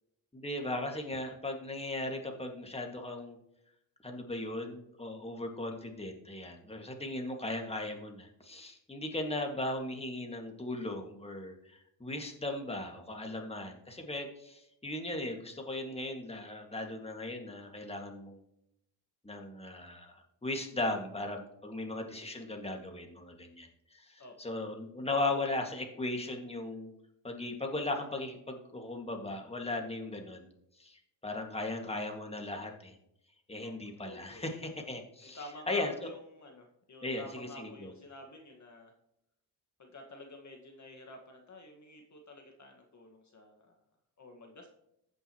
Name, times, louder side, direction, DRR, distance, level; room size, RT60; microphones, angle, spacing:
voice 1, 0.3-3.4 4.0-18.4 19.2-26.9 27.2-30.5 30.8-33.0 33.5-35.9 37.0-37.9, left 2 dB, 15° left, 2 dB, 2.1 m, -37 dB
voice 2, 34.0-34.5 35.2-38.9 39.8-43.8 44.2-44.7, left 1 dB, 40° left, 2 dB, 1.7 m, -50 dB
15.5 x 5.4 x 3.1 m, 0.79 s
cardioid pair, 75°, 42 cm